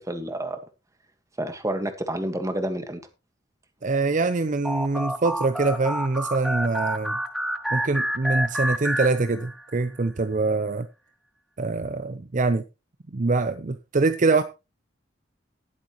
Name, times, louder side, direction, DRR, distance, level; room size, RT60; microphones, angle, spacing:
voice 1, 0.1-0.6 1.4-3.0, right 1 dB, 15° right, 7 dB, 1.6 m, -29 dB
voice 2, 3.8-7.2 7.7-10.9 11.6-12.6 13.1-14.4, right 3 dB, 45° right, 11 dB, 0.6 m, -24 dB
sound 1, 4.6-9.8, equal, ahead, 0.8 m, -29 dB
19.0 x 8.0 x 3.0 m, 0.28 s
head